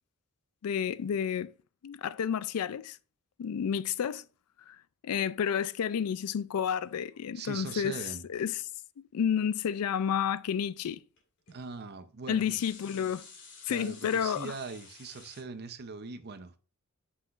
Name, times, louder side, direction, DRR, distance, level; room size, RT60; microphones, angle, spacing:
voice 1, 0.6-1.5 1.8-3.0 3.4-4.2 4.7-4.8 5.0-8.0 8.3-8.6 9.1-11.0 12.3-13.3 13.7-14.5, left 8 dB, 85° left, 0.4 m, -30 dB
sound 1, 6.8-7.9 9.6-9.8 11.2-11.3 11.5-11.6 12.3-15.4, left 4 dB, 55° left, 2.3 m, -52 dB
voice 2, 7.3-8.3 11.5-12.6 13.7-16.6, right 4 dB, 45° right, 0.7 m, -41 dB
8.1 x 5.8 x 2.5 m
head